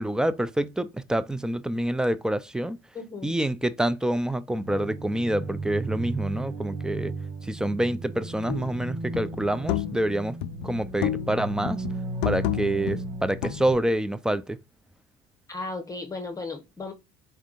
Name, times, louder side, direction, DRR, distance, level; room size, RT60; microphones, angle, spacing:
voice 1, 0.0-2.8 3.2-7.1 7.4-10.4 10.6-11.8 12.2-14.6, right 1 dB, 5° right, 0.4 m, -27 dB
voice 2, 2.9-3.4 15.5-16.9, left 3 dB, 20° left, 0.9 m, -35 dB
sound 1, 4.6-13.7, right 2 dB, 90° right, 1.4 m, -35 dB
sound 2, 8.5-8.8 9.1-10.1 10.4-11.4 11.7-13.9, left 13 dB, 90° left, 0.4 m, -31 dB
4.4 x 3.4 x 2.4 m
supercardioid pair, 100°, 19 cm